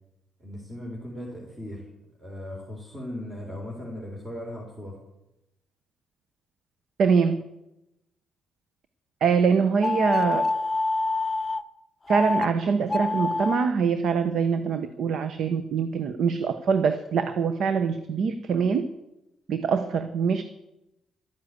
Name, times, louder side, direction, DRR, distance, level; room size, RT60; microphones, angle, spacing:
voice 1, 0.4-1.9 2.2-5.0, left 1 dB, 20° right, -1 dB, 3.6 m, -37 dB
voice 2, 7.0-7.4 9.2-10.4 12.1-18.9 19.5-20.4, right 6 dB, 65° right, 10 dB, 0.9 m, -24 dB
sound 1, 9.8-11.6 12.1-12.5 12.8-13.7, left 3 dB, 30° left, 0.6 m, -26 dB
12.5 x 9.7 x 8.0 m, 0.91 s
cardioid pair, 90°, 0 cm